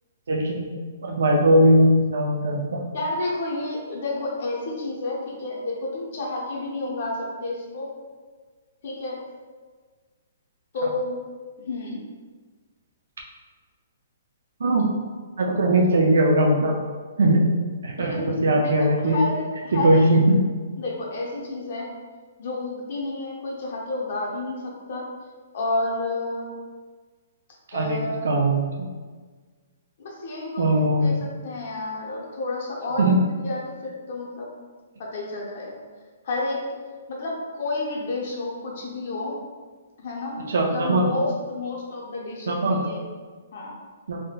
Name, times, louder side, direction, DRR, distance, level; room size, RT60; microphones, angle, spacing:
voice 1, 0.3-0.7 1.0-2.8 14.6-14.9 15.4-16.8 17.2-17.4 17.8-19.2 19.7-20.4 27.7-28.0 28.2-28.9 30.6-31.2 33.0-33.2 40.5-41.0 42.5-42.9 44.1-44.2, right 1 dB, 85° right, -1 dB, 0.4 m, -20 dB
voice 2, 2.9-7.9 8.8-9.2 10.7-11.2 11.7-12.0 18.0-18.3 18.6-20.1 20.8-21.9 22.4-25.1 25.5-26.5 27.7-28.3 30.0-34.5 35.0-35.8 36.2-36.7 37.1-39.4 40.0-43.0 43.5-43.8, left 2 dB, 50° left, -3 dB, 0.6 m, -30 dB
3.4 x 2.6 x 2.3 m, 1.5 s
hypercardioid pair, 170°, 0 cm